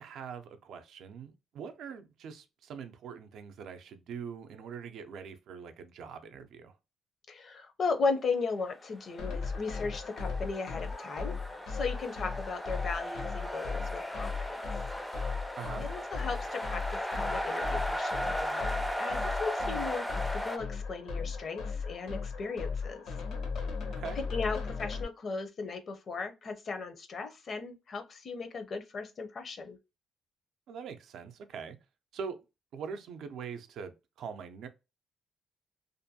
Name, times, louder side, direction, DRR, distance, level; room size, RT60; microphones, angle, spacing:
voice 1, 0.0-6.7 15.6-15.9 23.9-24.2 30.7-31.8 32.1-32.4 32.7-34.7, right 6 dB, 75° right, 0.4 m, -43 dB
voice 2, 7.3-11.3 11.7-14.6 15.8-18.7 19.0-23.1 24.2-29.8, left 4 dB, 50° left, 0.6 m, -36 dB
sound 1, 9.1-20.6, equal, 5° left, 0.4 m, -36 dB
sound 2, 9.2-25.0, left 5 dB, 75° left, 0.8 m, -37 dB
2.5 x 2.2 x 2.7 m
cardioid pair, 90°, 0 cm